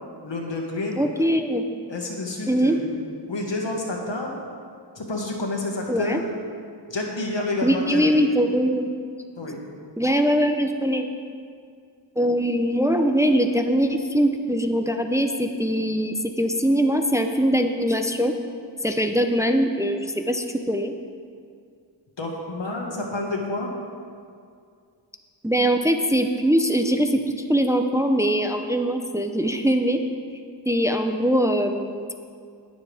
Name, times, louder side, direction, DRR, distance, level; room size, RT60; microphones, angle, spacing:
voice 1, 0.2-1.1 1.9-2.9 3.3-4.4 4.9-6.3 6.9-8.3 9.4-9.6 22.2-23.7, left 2 dB, 80° left, 0 dB, 1.8 m, -29 dB
voice 2, 1.0-1.6 2.5-2.8 5.9-6.2 7.6-8.9 10.0-11.1 12.2-18.3 18.8-20.9 25.4-27.2 27.5-30.0 30.7-32.1, equal, 5° right, 5 dB, 0.6 m, -22 dB
19.0 x 7.2 x 3.5 m, 2.3 s
wide cardioid pair, 60°, 43 cm